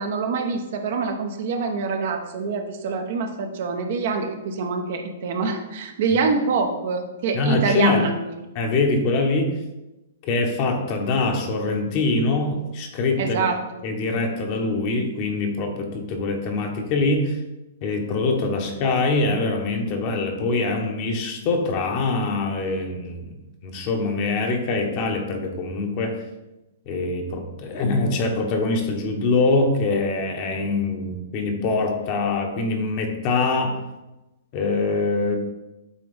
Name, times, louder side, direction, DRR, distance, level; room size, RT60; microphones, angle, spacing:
voice 1, 0.0-8.1 13.2-13.6, right 4 dB, 55° right, 5 dB, 0.8 m, -25 dB
voice 2, 7.3-8.0 8.5-9.6 10.2-13.4 13.8-17.4 17.8-23.3 23.6-26.2 26.9-33.8 34.5-35.4, left 3 dB, 40° left, 3 dB, 1.1 m, -23 dB
8.3 x 3.4 x 3.5 m, 0.99 s
figure-of-eight pair, 110°, 0 cm